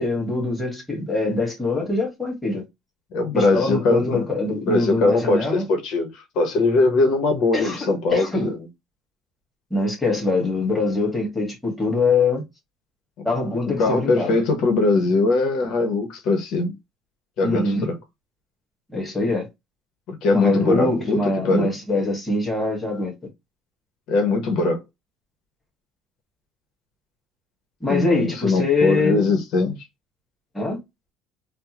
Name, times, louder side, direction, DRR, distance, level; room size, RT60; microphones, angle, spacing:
voice 1, 0.0-2.6 3.3-5.7 7.5-8.6 9.7-12.4 13.3-14.4 17.4-17.9 18.9-19.5 20.3-23.1 27.8-29.3 30.5-30.8, left 3 dB, 5° left, 1.7 m, -23 dB
voice 2, 3.1-4.2 4.7-8.5 13.2-13.3 13.8-16.7 17.4-17.9 20.1-21.2 21.4-21.7 24.1-24.8 27.9-29.8, left 3 dB, 70° left, 1.0 m, -21 dB
3.5 x 2.2 x 2.9 m
cardioid pair, 120°, 0 cm